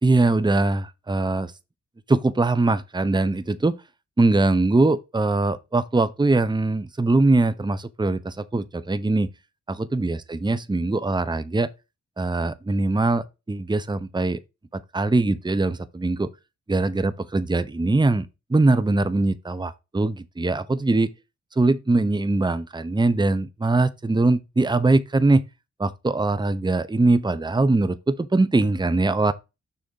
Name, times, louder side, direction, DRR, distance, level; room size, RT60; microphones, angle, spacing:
voice 1, 0.0-1.5 2.1-3.8 4.2-9.3 9.7-11.7 12.2-14.4 14.7-16.3 16.7-21.1 21.6-25.4 25.8-29.3, right 2 dB, 15° right, 0.8 m, -22 dB
6.8 x 3.7 x 5.3 m
cardioid pair, 55°, 29 cm